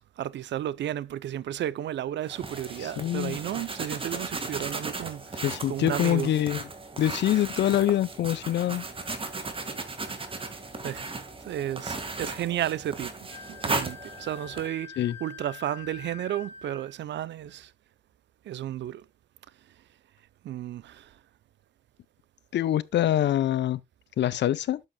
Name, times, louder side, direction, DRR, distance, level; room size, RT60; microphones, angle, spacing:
voice 1, 0.0-6.3 10.3-10.5 10.8-11.1 11.4-17.7 18.4-19.0 20.4-21.2, right 11 dB, 65° right, 0.6 m, -33 dB
sound 1, 2.3-14.7, right 3 dB, 25° right, 1.8 m, -36 dB
voice 2, 2.8-3.4 5.4-6.6 7.0-8.8 15.0-15.2 22.5-23.8 24.2-24.8, left 12 dB, 60° left, 0.6 m, -25 dB
Wind instrument woodwind instrument, 13.3-17.0, left 7 dB, 15° left, 4.8 m, -45 dB
12.0 x 7.8 x 2.3 m
cardioid pair, 90°, 20 cm